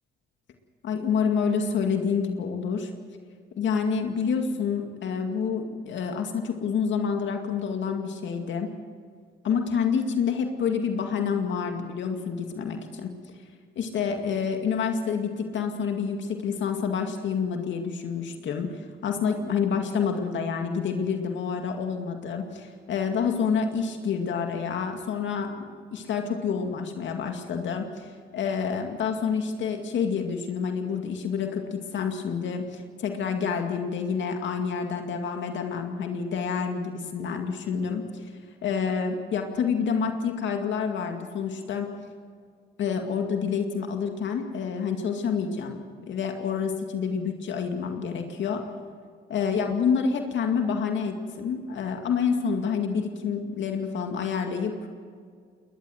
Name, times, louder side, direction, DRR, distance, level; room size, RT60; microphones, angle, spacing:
voice 1, 0.8-2.9 3.5-8.7 9.4-13.1 13.8-38.3 38.6-41.9 42.8-48.6 49.3-54.9, left 6 dB, 70° left, 4 dB, 2.2 m, -28 dB
21.0 x 20.0 x 8.0 m, 2.1 s
cardioid pair, 90°, 20 cm